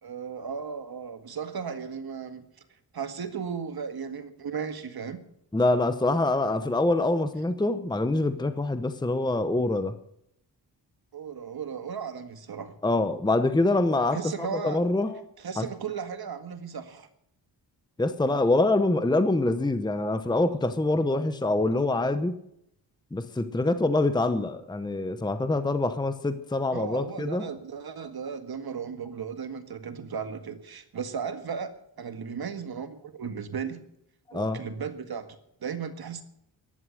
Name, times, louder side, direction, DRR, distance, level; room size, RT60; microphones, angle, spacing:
voice 1, 0.0-2.5 2.9-5.2 11.1-12.8 14.1-14.8 15.4-17.1 26.7-31.7 32.0-33.8 34.3-36.2, right 6 dB, 60° right, 8 dB, 1.8 m, -35 dB
voice 2, 5.5-9.9 12.8-14.2 14.6-15.2 15.6-15.7 18.0-22.4 23.1-27.4 34.3-34.6, left 2 dB, 10° left, 10 dB, 0.9 m, -25 dB
14.5 x 11.5 x 6.5 m, 0.74 s
wide cardioid pair, 105°, 43 cm